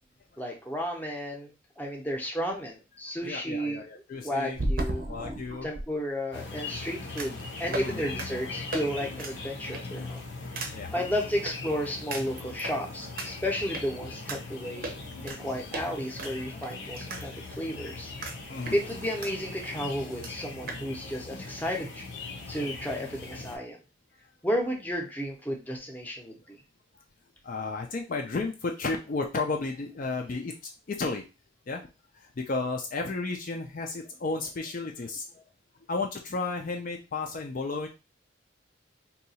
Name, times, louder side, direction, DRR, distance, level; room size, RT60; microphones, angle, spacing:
voice 1, 0.4-3.8 4.2-5.0 5.6-10.2 10.6-14.9 15.2-18.1 18.4-22.0 22.5-23.8 24.4-26.6, equal, 10° left, 1 dB, 0.7 m, -33 dB
voice 2, 3.2-4.6 5.0-5.7 7.7-8.0 10.7-10.9 18.5-18.8 22.5-22.6 27.4-30.5 30.9-31.2 31.7-31.9 32.1-35.4 35.9-37.9, left 3 dB, 45° left, 2 dB, 0.4 m, -33 dB
sound 1, 4.5-5.9 7.2-7.4 7.7-7.9 8.2-8.3 8.7-8.8 9.2-9.3 9.7-10.0 10.6-10.7 11.5-11.6 12.1-12.7 13.2-13.3 13.7-13.8 14.3-14.4 14.8-15.4 15.7-15.9 16.2-17.2 17.5-17.6 18.2-18.4 18.7-19.3 19.6-19.7 19.9-20.0 20.2-20.3 20.7-20.8, right 2 dB, 50° right, 0.6 m, -34 dB
sound 2, 6.3-23.6, left 3 dB, 75° left, 0.7 m, -40 dB
2.8 x 2.3 x 4.1 m, 0.29 s
head